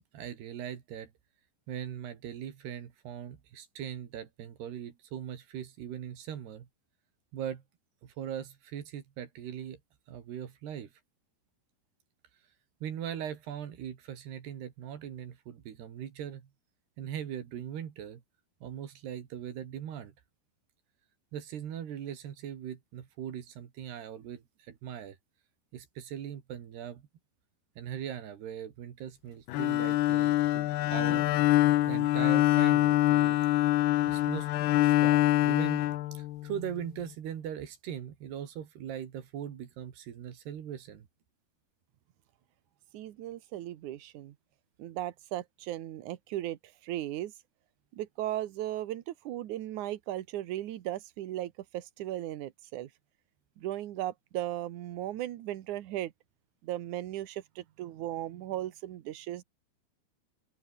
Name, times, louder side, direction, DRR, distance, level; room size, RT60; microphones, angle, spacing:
voice 1, 0.1-1.1 1.7-6.7 7.3-7.6 8.0-9.8 10.1-10.9 12.8-16.5 17.0-18.2 18.6-20.1 21.3-25.2 25.7-27.1 27.8-31.4 31.9-33.4 34.0-34.5 34.8-35.8 36.1-41.1, right 9 dB, 80° right, 4.5 m, -40 dB
Bowed string instrument, 29.5-36.7, left 15 dB, 85° left, 3.1 m, -25 dB
voice 2, 42.9-44.4 44.8-47.3 47.9-52.9 53.6-56.1 56.6-59.4, right 13 dB, 65° right, 2.2 m, -37 dB
open air
omnidirectional pair, 4.7 m